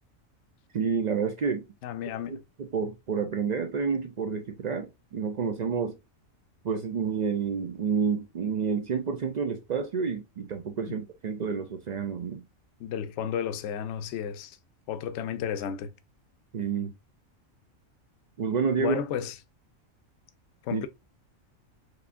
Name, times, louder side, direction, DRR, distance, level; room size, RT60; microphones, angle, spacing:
voice 1, 0.7-1.7 2.3-6.0 6.6-12.4 16.5-16.9 18.4-19.0 20.7-20.8, right 6 dB, 80° right, 0.3 m, -29 dB
voice 2, 1.8-2.4 10.9-11.0 12.8-14.6 14.9-15.9 18.8-19.3 20.6-20.9, left 8 dB, 65° left, 0.8 m, -33 dB
4.8 x 3.2 x 2.5 m
omnidirectional pair, 1.4 m